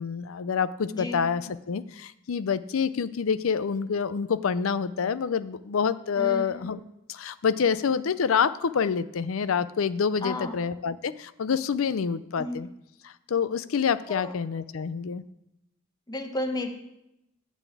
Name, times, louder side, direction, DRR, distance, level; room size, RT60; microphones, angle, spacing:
voice 1, 0.0-6.8 7.1-12.7 13.3-15.2, left 6 dB, 85° left, 15 dB, 0.5 m, -27 dB
voice 2, 0.9-1.2 6.2-6.7 10.2-10.6 12.4-12.6 14.1-14.3 16.1-16.7, left 1 dB, 20° left, 6 dB, 1.0 m, -33 dB
12.5 x 4.2 x 8.3 m, 0.86 s
head